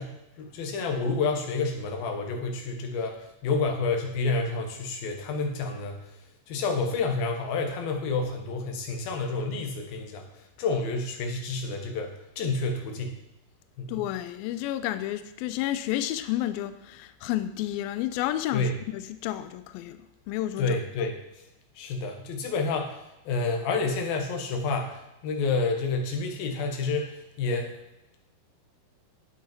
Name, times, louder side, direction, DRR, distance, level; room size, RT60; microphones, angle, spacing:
voice 1, 0.0-6.0 6.5-10.2 10.6-13.1 13.8-14.0 18.5-18.7 20.6-21.1 21.8-23.0 23.3-27.7, left 3 dB, 65° left, 3.1 m, -29 dB
voice 2, 13.9-20.8, left 13 dB, 90° left, 2.1 m, -31 dB
12.0 x 8.5 x 4.5 m
omnidirectional pair, 4.8 m